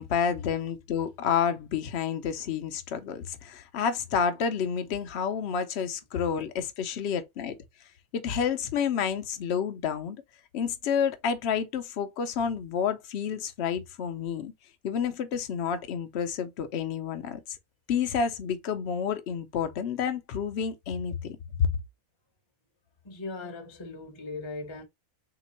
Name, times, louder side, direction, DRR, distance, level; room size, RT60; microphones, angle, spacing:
voice 1, 0.0-7.6 8.1-10.2 10.5-14.5 14.8-17.4 17.9-21.7, left 7 dB, 55° left, 0.8 m, -29 dB
voice 2, 23.0-24.8, left 3 dB, 25° left, 0.8 m, -38 dB
3.5 x 2.9 x 4.1 m
omnidirectional pair, 1.5 m